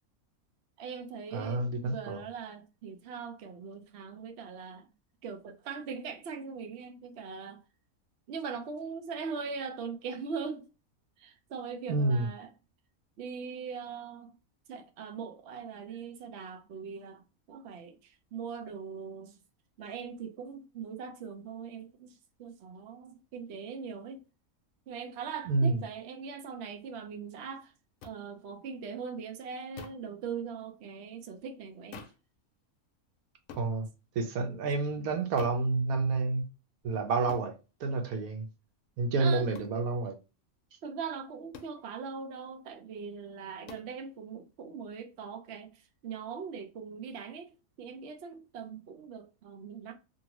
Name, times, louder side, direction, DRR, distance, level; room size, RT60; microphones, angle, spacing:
voice 1, 0.8-4.9 5.2-7.6 8.3-10.7 11.2-12.5 13.2-14.3 14.7-19.4 19.8-24.2 24.9-27.7 28.0-32.1 39.2-39.5 40.8-49.9, right 6 dB, 60° right, 0.8 m, -41 dB
voice 2, 1.3-2.2 11.9-12.3 25.5-25.8 33.6-33.9 34.2-36.5 36.8-37.5 37.8-38.5 39.0-40.1, right 3 dB, 85° right, 1.2 m, -29 dB
sound 1, 28.0-28.2 29.8-30.1 31.9-32.3 33.5-33.7 35.4-35.7 37.3-37.5 39.5-39.8 41.5-41.8 43.7-43.9, left 6 dB, 70° left, 1.0 m, -47 dB
2.8 x 2.6 x 2.9 m
omnidirectional pair, 1.5 m